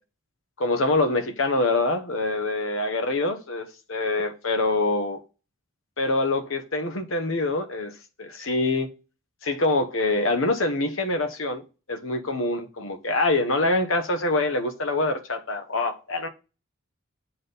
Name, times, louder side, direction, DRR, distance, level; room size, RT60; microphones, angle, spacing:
voice 1, 0.6-5.2 6.0-7.9 8.2-8.9 9.4-11.6 11.9-16.3, left 2 dB, 70° left, 1.1 m, -25 dB
7.4 x 3.9 x 4.0 m
head